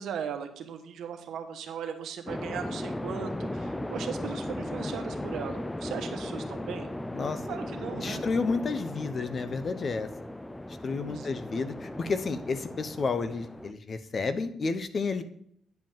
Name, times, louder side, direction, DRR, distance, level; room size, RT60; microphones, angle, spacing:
voice 1, 0.0-6.9 7.5-8.2 11.0-11.3, right 8 dB, 75° right, 6 dB, 1.2 m, -38 dB
sound 1, 2.3-13.7, left 1 dB, 10° left, 0.4 m, -37 dB
voice 2, 7.1-7.6 8.0-10.1 10.8-15.2, left 4 dB, 40° left, 11 dB, 0.8 m, -31 dB
9.5 x 5.2 x 5.4 m, 0.69 s
cardioid pair, 90°, 0 cm